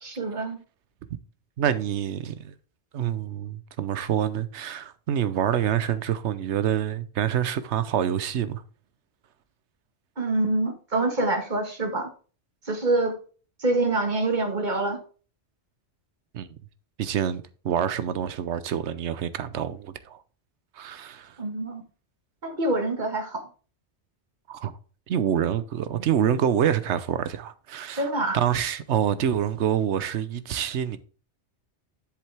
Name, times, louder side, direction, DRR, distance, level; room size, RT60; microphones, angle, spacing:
voice 1, 0.0-0.6 10.2-12.1 12.6-13.2 13.6-15.0 21.4-21.8 22.4-23.4 27.9-28.4, right 2 dB, 45° right, 1.7 m, -26 dB
voice 2, 1.6-2.5 2.9-8.6 16.3-16.5 17.0-20.2 20.7-21.4 24.5-24.7 25.1-28.1 28.3-31.0, right 9 dB, 80° right, 1.0 m, -26 dB
7.6 x 7.2 x 3.4 m
omnidirectional pair, 1.2 m